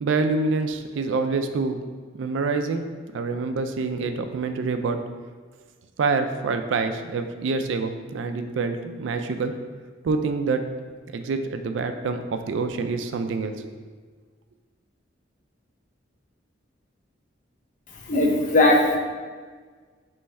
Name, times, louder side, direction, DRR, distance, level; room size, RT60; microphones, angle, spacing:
voice 1, 0.0-1.8 2.2-2.9 3.1-5.0 6.0-9.5 10.0-10.6 11.1-13.7, right 4 dB, 80° right, 7 dB, 0.4 m, -26 dB
voice 2, 18.0-19.0, left 2 dB, 40° left, 0 dB, 0.6 m, -19 dB
3.4 x 3.1 x 4.2 m, 1.5 s
head